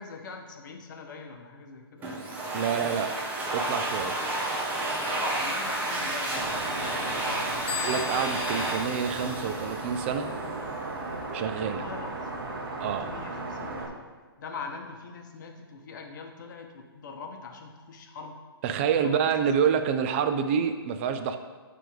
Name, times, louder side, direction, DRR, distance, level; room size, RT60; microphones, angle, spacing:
voice 1, 0.0-2.1 5.1-7.8 11.6-14.0 14.4-18.4 18.8-19.6, left 4 dB, 50° left, 4 dB, 1.0 m, -42 dB
Domestic sounds home sounds, 2.0-10.5, right 2 dB, 10° right, 0.9 m, -31 dB
voice 2, 2.5-3.1 3.5-4.2 7.8-10.3 11.3-11.8 12.8-13.1 18.6-21.4, right 7 dB, 30° right, 8 dB, 0.5 m, -27 dB
sound 1, 6.3-13.9, right 3 dB, 55° right, 1.3 m, -36 dB
sound 2, 7.7-10.2, left 10 dB, 75° left, 0.5 m, -40 dB
8.6 x 3.4 x 5.2 m, 1.4 s
hypercardioid pair, 140°, 13 cm